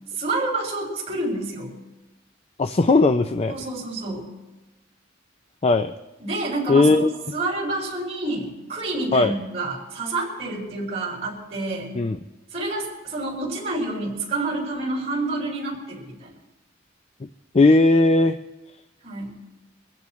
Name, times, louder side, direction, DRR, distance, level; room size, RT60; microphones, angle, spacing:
voice 1, 0.2-1.7 3.5-4.3 6.2-7.0 7.3-11.9 12.5-16.3 19.0-19.3, right 2 dB, 35° right, -3 dB, 6.1 m, -28 dB
voice 2, 2.6-3.5 5.6-5.9 6.7-7.1 9.1-9.3 12.0-12.2 17.5-18.4, left 3 dB, 30° left, 8 dB, 0.5 m, -17 dB
25.5 x 15.5 x 3.2 m, 1.1 s
head